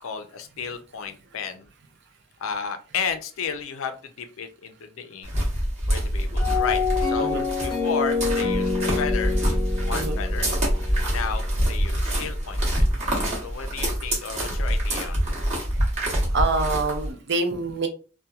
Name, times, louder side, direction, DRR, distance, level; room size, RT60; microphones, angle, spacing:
voice 1, 0.0-1.7 2.4-5.3 5.9-9.4 9.8-10.5 11.0-12.9 13.4-15.4, left 6 dB, 85° left, 8 dB, 0.4 m, -33 dB
sound 1, 5.2-17.1, equal, 35° right, 1.0 m, -25 dB
sound 2, 6.4-11.5, left 5 dB, 25° left, 0.6 m, -27 dB
voice 2, 9.9-10.2 16.3-17.9, right 3 dB, 55° right, 6 dB, 0.5 m, -26 dB
2.8 x 2.2 x 2.3 m, 0.35 s
head